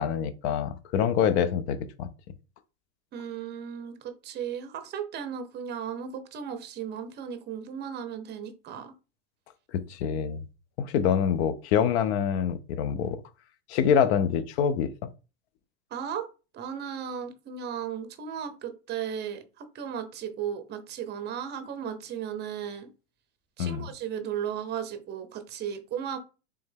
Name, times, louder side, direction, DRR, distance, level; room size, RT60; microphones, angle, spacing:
voice 1, 0.0-2.1 9.7-10.4 10.8-13.2 13.7-14.9 23.6-23.9, left 8 dB, 60° left, 0.6 m, -25 dB
voice 2, 3.1-8.9 15.9-16.3 16.5-22.9 23.6-26.2, right 8 dB, 30° right, 0.7 m, -35 dB
3.4 x 3.1 x 3.4 m
supercardioid pair, 120°, 37 cm